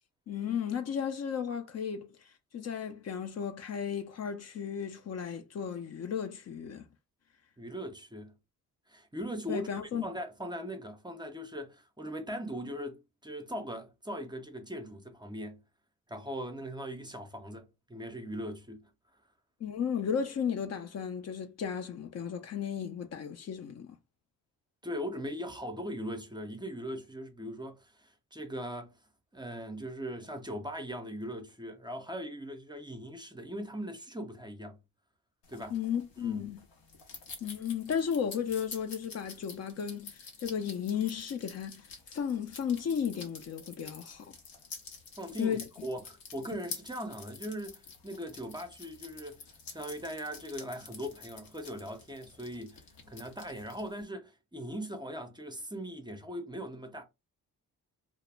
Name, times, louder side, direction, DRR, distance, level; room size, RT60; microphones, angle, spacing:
voice 1, 0.3-6.9 9.5-10.0 19.6-24.0 35.7-36.6 37.4-44.4 45.4-45.6, left 7 dB, 45° left, 0.5 m, -34 dB
voice 2, 7.6-8.3 8.9-9.7 10.0-15.6 16.1-18.9 24.8-28.9 29.3-34.8 35.5-35.7 36.2-36.4 45.2-49.5 49.7-57.0, equal, 15° right, 0.5 m, -40 dB
sound 1, 35.4-54.0, left 5 dB, 80° left, 0.8 m, -49 dB
2.2 x 2.0 x 3.2 m
supercardioid pair, 70°, 35 cm